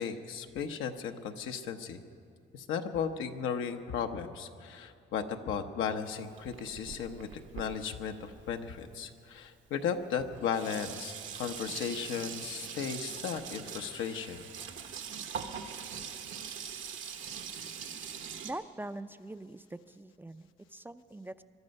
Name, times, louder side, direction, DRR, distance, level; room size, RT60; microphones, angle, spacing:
voice 1, 0.0-2.0 2.5-7.3 7.5-14.5, left 7 dB, 85° left, 6 dB, 0.9 m, -35 dB
Sink (filling or washing), 6.0-9.1 9.9-10.0 10.2-18.5, right 7 dB, 75° right, 1.2 m, -42 dB
voice 2, 18.4-21.4, right 1 dB, 10° right, 11 dB, 0.4 m, -43 dB
22.0 x 12.0 x 5.4 m, 2.3 s
cardioid pair, 90°, 20 cm